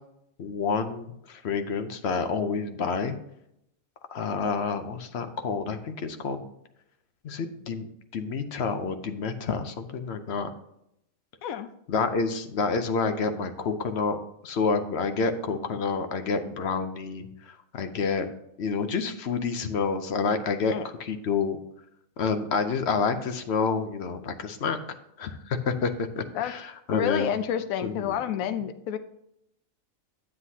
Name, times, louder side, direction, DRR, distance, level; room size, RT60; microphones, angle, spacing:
voice 1, 0.4-3.1 4.1-6.5 7.2-7.9 8.1-10.5 11.9-14.2 14.4-18.3 18.6-20.7 21.0-21.6 22.2-24.8 25.2-27.3 27.8-28.1, left 5 dB, 55° left, 8 dB, 0.9 m, -28 dB
voice 2, 11.4-11.7 20.7-20.9 26.3-26.5 26.9-29.0, left 9 dB, 80° left, 10 dB, 1.1 m, -29 dB
9.7 x 7.8 x 2.8 m, 0.79 s
omnidirectional pair, 1.4 m